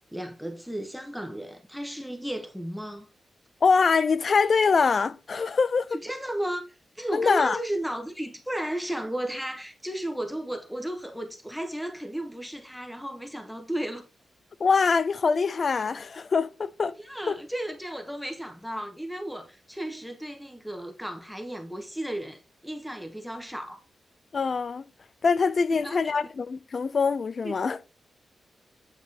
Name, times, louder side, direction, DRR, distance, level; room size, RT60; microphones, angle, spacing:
voice 1, 0.1-3.1 5.9-6.6 7.0-14.0 17.0-23.8 25.8-26.2 27.4-27.6, right 1 dB, ahead, 0.9 m, -34 dB
voice 2, 3.6-5.9 7.1-7.6 14.6-17.0 17.3-17.4 24.3-24.8 25.2-27.8, left 5 dB, 45° left, 0.4 m, -24 dB
8.7 x 3.0 x 4.0 m
wide cardioid pair, 130°, 0 cm